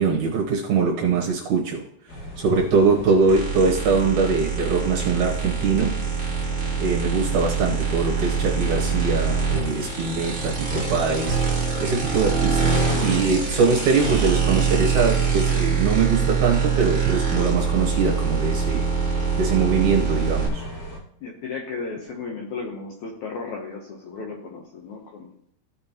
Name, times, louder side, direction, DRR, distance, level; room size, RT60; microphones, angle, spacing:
voice 1, 0.0-1.8 2.4-6.0 6.8-11.4 11.8-18.8 19.4-20.7, right 5 dB, 70° right, -1 dB, 2.0 m, -22 dB
sound 1, 2.1-21.0, equal, 55° left, 3.3 m, -37 dB
sound 2, 3.3-20.5, right 5 dB, 25° right, 1.1 m, -24 dB
voice 2, 21.2-25.3, left 4 dB, 70° left, 1 dB, 1.9 m, -34 dB
15.5 x 5.6 x 2.9 m, 0.72 s
omnidirectional pair, 4.4 m